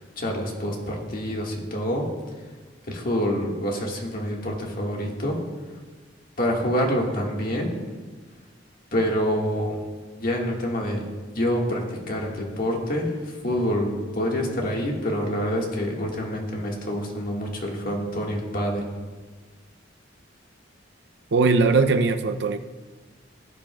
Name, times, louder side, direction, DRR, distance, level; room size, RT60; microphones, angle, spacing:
voice 1, 0.0-2.0 2.9-5.4 6.4-7.7 8.9-9.8 10.2-11.0 11.3-18.8, equal, 50° left, -1 dB, 1.7 m, -27 dB
voice 2, 21.3-22.6, right 4 dB, 60° right, 7 dB, 0.6 m, -20 dB
17.5 x 8.9 x 2.3 m, 1.4 s
head